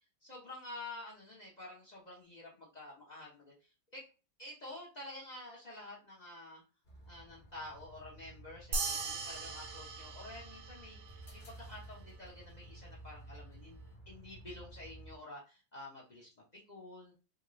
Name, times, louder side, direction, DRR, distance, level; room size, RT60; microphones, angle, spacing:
voice 1, 0.2-3.5 3.9-4.0 4.4-6.6 7.1-13.8 14.1-16.3 16.7-17.1, left 2 dB, 60° left, -4 dB, 0.4 m, -49 dB
sound 1, 6.8-15.2, right 2 dB, 35° left, 0.9 m, -53 dB
sound 2, 8.7-11.5, right 3 dB, 75° right, 1.6 m, -39 dB
3.5 x 2.5 x 3.0 m, 0.32 s
omnidirectional pair, 2.2 m